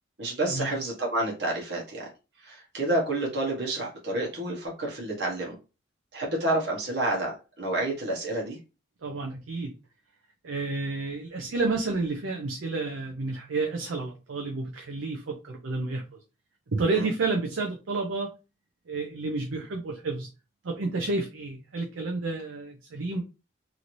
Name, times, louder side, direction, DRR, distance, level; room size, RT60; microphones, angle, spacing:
voice 1, 0.2-2.1 2.4-5.5 6.1-8.6 16.9-17.1, right 2 dB, 55° right, 1.0 m, -29 dB
voice 2, 9.0-9.8 10.4-16.2 16.7-18.3 18.9-20.3 20.6-23.2, right 3 dB, 85° right, 0.5 m, -30 dB
3.0 x 2.7 x 2.6 m
head